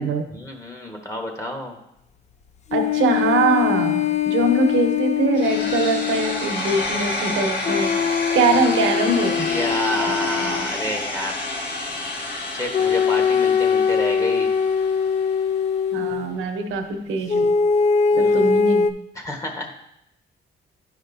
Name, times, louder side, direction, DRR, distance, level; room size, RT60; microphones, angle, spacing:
voice 1, 0.3-1.8 8.5-8.7 9.3-11.4 12.5-14.5 18.1-18.6 19.1-19.7, left 1 dB, 15° left, 2 dB, 1.2 m, -29 dB
sound 1, 2.7-6.5 7.6-10.7 12.7-16.3 17.3-18.9, left 6 dB, 35° left, 0.4 m, -21 dB
voice 2, 2.7-7.9 8.3-9.5 10.4-10.5 15.9-17.5 18.2-18.9, right 3 dB, 80° right, 4 dB, 1.0 m, -22 dB
sound 2, 5.4-15.3, left 2 dB, 60° left, 1.7 m, -29 dB
10.0 x 5.1 x 2.7 m, 0.80 s
cardioid pair, 90°, 20 cm